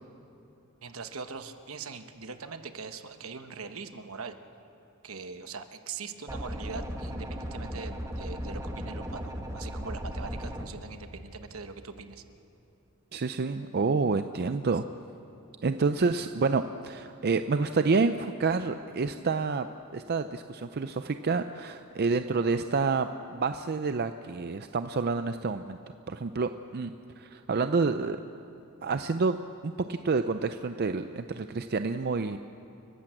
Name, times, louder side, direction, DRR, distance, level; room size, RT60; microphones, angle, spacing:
voice 1, 0.8-4.4 5.0-12.2, right 4 dB, 70° right, 8 dB, 1.1 m, -41 dB
sound 1, 6.3-10.7, equal, 15° right, 1.5 m, -36 dB
voice 2, 13.1-14.8 15.6-19.7 19.9-25.8 26.1-28.2 28.8-29.4 29.6-32.4, right 4 dB, 45° right, 9 dB, 0.5 m, -28 dB
30.0 x 12.0 x 7.8 m, 2.9 s
head